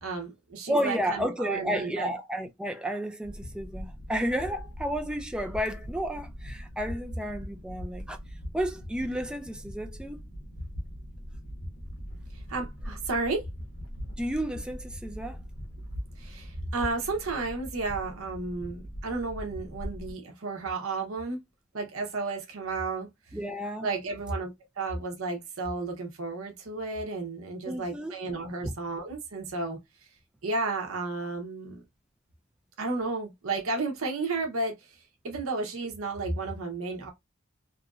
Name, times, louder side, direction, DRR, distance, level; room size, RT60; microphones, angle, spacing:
voice 1, 0.0-2.1 12.5-13.4 16.2-21.4 21.7-23.1 23.8-24.5 24.8-29.8 30.4-31.8 32.8-34.7 35.2-37.1, right 3 dB, 75° right, 0.8 m, -32 dB
voice 2, 0.7-8.2 8.5-10.2 14.2-15.4 23.3-23.9 27.7-28.1, equal, 5° right, 0.3 m, -32 dB
sound 1, 3.2-20.1, equal, 75° left, 1.0 m, -41 dB
2.9 x 2.5 x 2.3 m
head